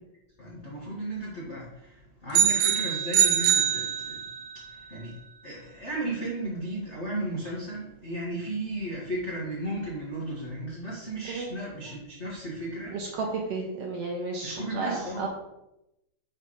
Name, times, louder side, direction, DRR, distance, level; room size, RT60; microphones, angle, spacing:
voice 1, 0.4-4.2 4.5-5.2 5.4-12.9 14.4-15.2, right 1 dB, 70° left, -6 dB, 0.6 m, -35 dB
sound 1, 2.3-4.5, right 9 dB, 85° right, 1.3 m, -23 dB
voice 2, 12.9-15.3, right 3 dB, 70° right, 0 dB, 1.6 m, -32 dB
6.4 x 3.2 x 5.6 m, 0.88 s
omnidirectional pair, 3.5 m